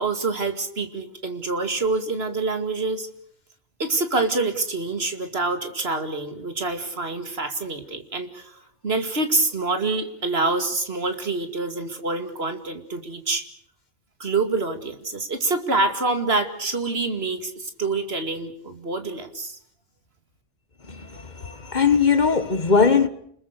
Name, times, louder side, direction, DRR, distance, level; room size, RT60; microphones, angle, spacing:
voice 1, 0.0-3.1 3.8-13.4 14.2-19.6, right 3 dB, 55° right, 2.5 m, -26 dB
voice 2, 21.4-23.1, left 5 dB, 40° left, 1.5 m, -19 dB
29.5 x 21.0 x 6.6 m
omnidirectional pair, 1.2 m